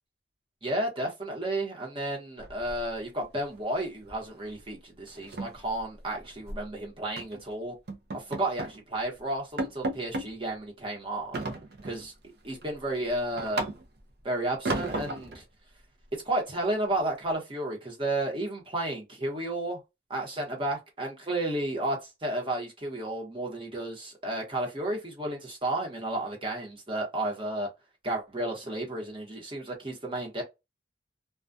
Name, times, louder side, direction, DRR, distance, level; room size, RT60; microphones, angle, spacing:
voice 1, 0.6-7.7 8.1-11.5 11.9-12.1 12.4-13.6 14.2-15.4 16.1-19.8 20.1-27.7 28.0-30.4, right 1 dB, 30° right, 0.9 m, -32 dB
sound 1, 2.4-3.2 3.5-3.8 4.1-4.3 4.6-4.7 5.1-6.6 7.2-7.4 7.9-8.8 9.2-9.3 9.6-10.3 11.3-12.1 12.5-14.1 14.6-15.4, right 2 dB, 60° right, 0.5 m, -34 dB
2.3 x 2.3 x 2.5 m
head